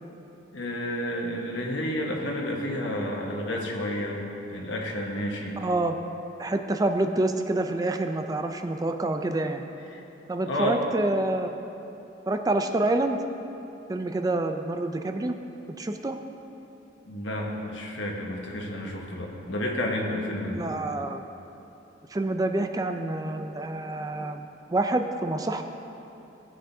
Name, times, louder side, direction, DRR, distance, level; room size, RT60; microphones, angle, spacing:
voice 1, 0.5-4.2 4.5-5.6 9.9-10.0 10.4-10.8 17.0-20.7, left 1 dB, 80° left, -1 dB, 1.3 m, -30 dB
voice 2, 5.6-6.0 6.4-9.6 10.3-11.6 12.3-13.2 13.9-15.3 15.8-16.2 20.5-21.2 22.1-25.6, right 2 dB, 20° right, 6 dB, 0.4 m, -27 dB
16.0 x 7.8 x 2.7 m, 2.9 s
head